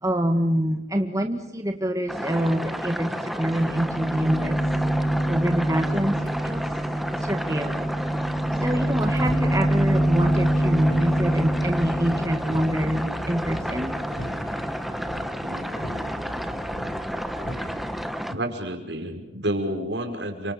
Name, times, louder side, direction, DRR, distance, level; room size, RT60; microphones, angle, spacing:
voice 1, 0.0-4.6 5.0-6.6 7.2-8.1 8.6-13.9, right 1 dB, 20° right, 5 dB, 1.7 m, -26 dB
sound 1, 2.1-18.3, equal, ahead, 1.4 m, -31 dB
sound 2, 3.4-14.5, right 1 dB, 55° left, 7.2 m, -26 dB
sound 3, 5.9-18.0, equal, 80° left, 7.6 m, -39 dB
voice 2, 15.4-15.8 18.3-20.5, right 1 dB, 70° right, 5 dB, 5.2 m, -30 dB
29.5 x 25.5 x 7.2 m, 0.87 s
head